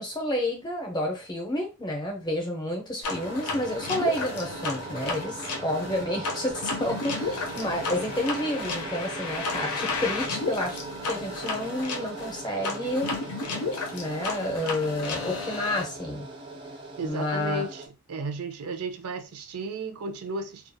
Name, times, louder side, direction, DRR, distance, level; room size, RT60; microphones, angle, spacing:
voice 1, 0.0-10.8 11.1-13.1 13.9-16.3 17.0-17.7, left 1 dB, 20° left, 0.6 m, -30 dB
sound 1, 3.0-15.8, left 3 dB, 80° left, 0.6 m, -33 dB
sound 2, 3.1-17.9, right 3 dB, 25° right, 0.4 m, -40 dB
voice 2, 17.0-17.8 18.1-20.7, right 3 dB, 80° right, 0.5 m, -34 dB
2.3 x 2.3 x 2.6 m
head